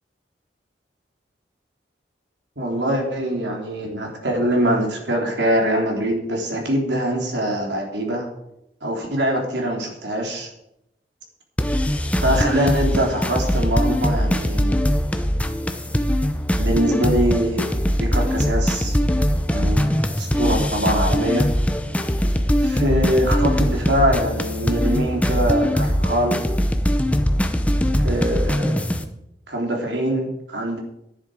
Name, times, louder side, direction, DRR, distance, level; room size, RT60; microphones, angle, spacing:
voice 1, 2.6-8.3 8.8-10.5 12.2-14.8 16.6-17.7 18.0-18.9 19.5-19.9 20.2-21.5 22.6-26.4 28.0-28.8 29.5-30.8, right 1 dB, 85° right, 1 dB, 3.2 m, -23 dB
sound 1, 11.6-29.0, equal, 10° left, 0.7 m, -21 dB
11.0 x 10.5 x 5.0 m, 0.81 s
head